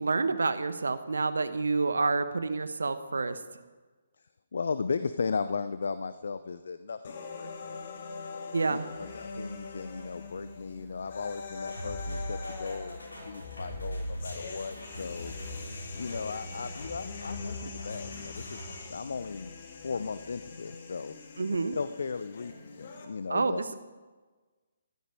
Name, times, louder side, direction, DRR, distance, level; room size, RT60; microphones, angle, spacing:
voice 1, 0.0-3.4 8.5-8.9 21.4-21.8 23.3-23.6, right 3 dB, 70° right, 12 dB, 1.1 m, -28 dB
voice 2, 4.5-7.7 8.7-15.3 16.0-19.5 19.8-21.1 21.5-23.6, left 5 dB, 60° left, 12 dB, 0.6 m, -36 dB
sound 1, 7.0-23.1, left 4 dB, 45° left, 2.0 m, -43 dB
Musical instrument, 8.9-20.6, left 4 dB, 15° left, 2.7 m, -54 dB
sound 2, 11.7-18.9, left 1 dB, 80° left, 5.2 m, -40 dB
15.0 x 12.5 x 4.7 m, 1.3 s
figure-of-eight pair, 140°, 0 cm